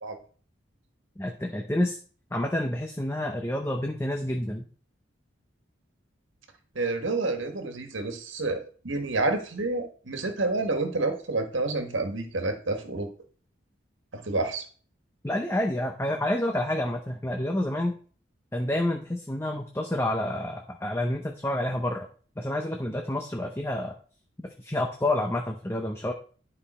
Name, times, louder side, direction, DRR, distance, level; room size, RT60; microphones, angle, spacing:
voice 1, 1.2-2.0 2.3-4.7 15.2-18.0 18.5-22.1 22.4-23.9 24.4-26.1, left 1 dB, 15° left, 3 dB, 0.7 m, -29 dB
voice 2, 6.7-13.1 14.1-14.6, right 2 dB, 75° right, 5 dB, 1.6 m, -29 dB
10.5 x 5.4 x 4.3 m, 0.42 s
head